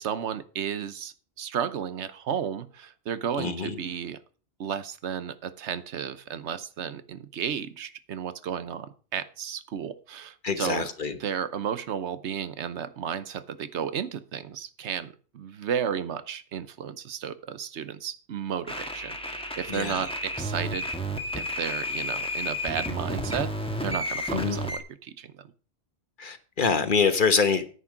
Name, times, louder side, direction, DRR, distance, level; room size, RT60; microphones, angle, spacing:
voice 1, 0.0-4.2 4.6-10.9 11.2-20.9 21.3-23.5 23.8-25.5, right 8 dB, 85° right, 1.1 m, -33 dB
voice 2, 10.4-11.1 19.7-20.1 24.3-24.6 26.2-27.6, left 5 dB, 50° left, 1.2 m, -25 dB
sound 1, 18.7-24.8, left 1 dB, 5° left, 1.4 m, -32 dB
9.8 x 8.5 x 4.9 m
omnidirectional pair, 1.1 m